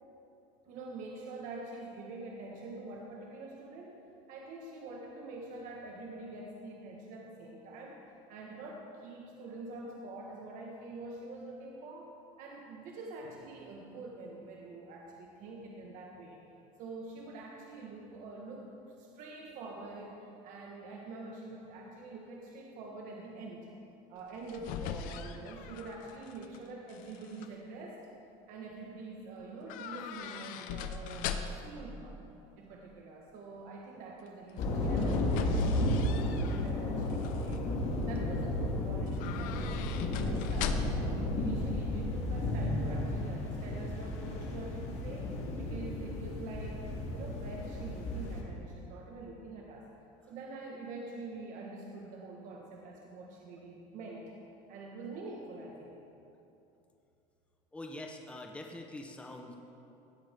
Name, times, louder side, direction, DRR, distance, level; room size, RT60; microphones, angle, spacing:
voice 1, 0.6-4.0 4.3-8.0 8.3-12.1 12.4-16.4 16.8-23.7 24.1-28.0 28.5-32.2 32.6-37.7 38.1-39.8 40.1-46.8 47.1-49.9 50.3-54.3 54.7-55.9, right 2 dB, 60° right, -1 dB, 1.3 m, -45 dB
sound 1, 24.2-26.6 26.9-27.5 29.7-31.8 34.6-36.7 37.1-37.6 39.1-41.2 41.4-41.5, left 7 dB, 65° left, 0.7 m, -40 dB
sound 2, 34.6-48.4, left 1 dB, 50° left, 1.9 m, -33 dB
voice 2, 57.7-59.5, left 1 dB, 10° left, 2 dB, 0.8 m, -44 dB
16.5 x 7.7 x 3.5 m, 2.8 s
cardioid pair, 130°, 15 cm